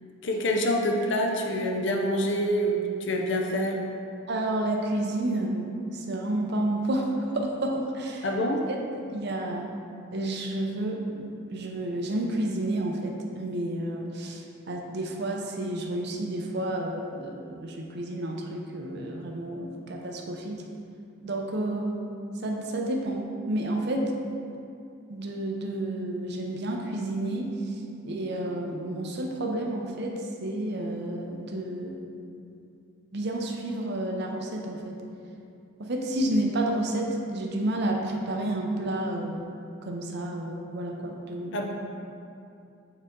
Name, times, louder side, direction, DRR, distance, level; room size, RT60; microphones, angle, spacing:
voice 1, 0.2-3.8 8.2-8.7 41.5-41.6, equal, 55° left, 2 dB, 0.6 m, -26 dB
voice 2, 4.3-8.2 9.1-9.7 10.1-20.6 21.2-22.0 22.4-24.1 25.1-27.5 28.0-30.1 30.4-32.0 33.1-35.0 35.8-39.4 39.8-41.6, right 1 dB, 50° right, 1 dB, 0.6 m, -30 dB
6.5 x 4.0 x 3.7 m, 2.5 s
head